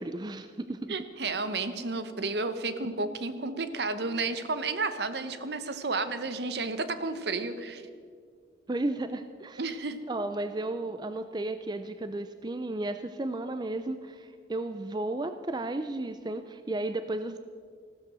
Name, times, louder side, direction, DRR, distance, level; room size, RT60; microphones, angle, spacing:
voice 1, 0.0-1.0 8.7-9.8 10.1-17.4, right 2 dB, 20° right, 9 dB, 0.4 m, -34 dB
voice 2, 0.9-7.8 9.6-10.0, right 3 dB, 60° right, 11 dB, 0.9 m, -32 dB
15.0 x 13.0 x 6.2 m, 2.1 s
head